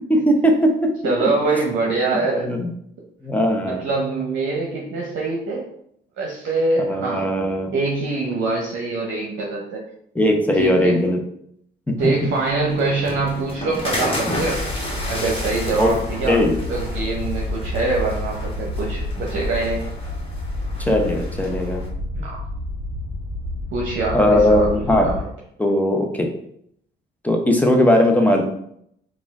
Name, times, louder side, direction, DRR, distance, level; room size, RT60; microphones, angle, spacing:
voice 1, 0.1-0.9 1.2-1.6 2.3-2.7 3.2-3.8 6.8-7.7 10.1-11.2 15.8-16.0 16.3-16.5 20.8-21.8 24.1-25.1 25.6-26.3 27.2-28.4, left 1 dB, 10° left, 2 dB, 0.7 m, -18 dB
voice 2, 1.0-2.5 3.7-5.6 6.2-7.3 7.7-9.8 10.6-11.0 12.0-14.6 15.1-16.4 16.7-19.8 22.1-22.4 23.7-24.7 25.0-25.1, right 3 dB, 75° right, -1 dB, 0.7 m, -24 dB
sound 1, 12.0-21.9, left 1 dB, 30° left, 1.3 m, -32 dB
sound 2, 14.4-25.2, left 1 dB, 35° right, 1.5 m, -29 dB
4.2 x 2.4 x 3.6 m, 0.71 s
cardioid pair, 90°, 20 cm